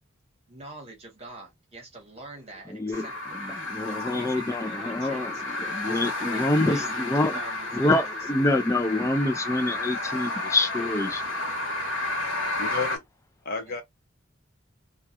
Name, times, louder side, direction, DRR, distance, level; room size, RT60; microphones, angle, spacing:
voice 1, 0.5-3.1 3.8-5.2 5.8-6.4 6.7-8.0 13.7-13.8, right 2 dB, 30° right, 1.1 m, -44 dB
voice 2, 2.7-7.4 7.7-11.4, left 2 dB, 15° left, 0.4 m, -26 dB
sound 1, 2.9-13.0, left 2 dB, 85° left, 1.0 m, -32 dB
voice 3, 12.5-13.0 13.4-13.8, left 4 dB, 50° left, 0.7 m, -31 dB
2.3 x 2.3 x 2.8 m
head